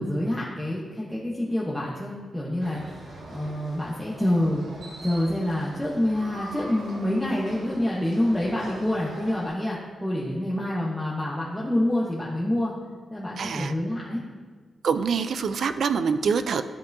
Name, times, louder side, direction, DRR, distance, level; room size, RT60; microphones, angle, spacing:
voice 1, 0.0-12.7 13.1-14.2, left 1 dB, ahead, -6 dB, 0.9 m, -27 dB
sound 1, 2.6-9.5, right 1 dB, 90° right, 1.9 m, -42 dB
voice 2, 13.4-13.7 14.8-16.6, right 6 dB, 65° right, 11 dB, 0.4 m, -25 dB
13.0 x 5.5 x 2.6 m, 1.5 s
wide cardioid pair, 155°, 0 cm